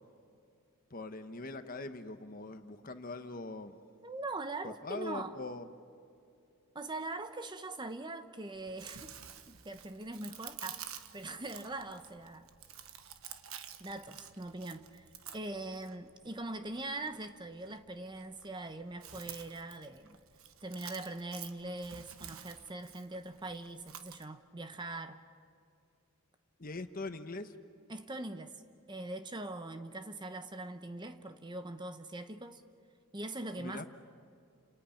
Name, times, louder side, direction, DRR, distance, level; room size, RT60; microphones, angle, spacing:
voice 1, 0.9-3.7 4.6-5.7 26.6-27.5 33.6-33.9, left 2 dB, 40° left, 1.1 m, -42 dB
voice 2, 4.0-5.4 6.7-9.2 9.5-12.5 13.8-15.1 15.3-20.2 20.6-25.2 27.9-28.6 28.9-32.6 33.1-33.9, right 2 dB, 20° right, 0.9 m, -42 dB
Chewing mastication, 8.5-24.2, right 9 dB, 65° right, 1.3 m, -51 dB
30.0 x 27.5 x 5.9 m
head